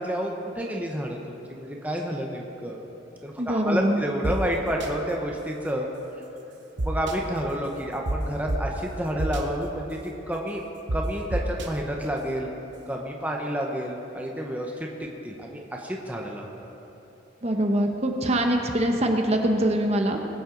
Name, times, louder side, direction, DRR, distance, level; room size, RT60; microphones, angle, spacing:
voice 1, 0.0-2.8 3.2-5.9 6.8-10.6 10.9-12.5 12.9-14.9 15.2-16.7, equal, 10° right, 0 dB, 0.9 m, -30 dB
voice 2, 3.4-4.0 17.4-20.2, right 1 dB, 35° right, 3 dB, 0.9 m, -23 dB
sound 1, 4.2-4.3 4.8-4.9 6.8-7.1 8.1-8.2 8.5-8.6 9.2-9.4 10.9-11.0 11.3-11.7, right 2 dB, 65° right, 0.9 m, -26 dB
20.5 x 8.7 x 3.9 m, 3.0 s
head